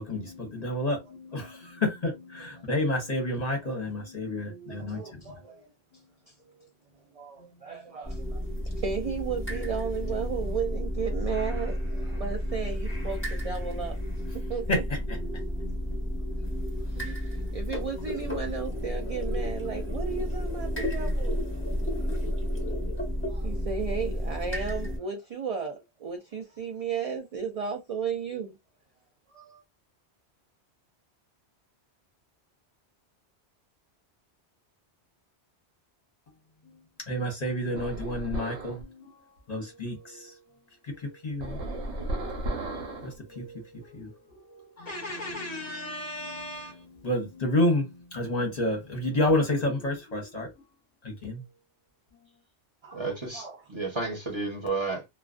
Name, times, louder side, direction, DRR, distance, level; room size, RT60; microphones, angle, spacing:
voice 1, 0.0-5.2 14.7-15.9 37.1-39.1 39.5-40.4 40.8-44.2 44.4-50.5 51.0-51.4, left 1 dB, 40° left, 0.8 m, -31 dB
voice 2, 4.7-5.7 7.1-8.4 8.8-14.0 14.3-14.7 16.9-21.4 23.3-28.6 29.3-29.6 52.8-53.6, right 6 dB, 60° right, 0.4 m, -34 dB
sound 1, 8.0-25.0, equal, 10° left, 1.0 m, -31 dB
sound 2, 37.8-38.8 41.4-43.2, right 1 dB, 80° right, 1.0 m, -34 dB
voice 3, 52.9-55.1, right 3 dB, 30° right, 0.8 m, -32 dB
2.3 x 2.2 x 2.4 m
omnidirectional pair, 1.1 m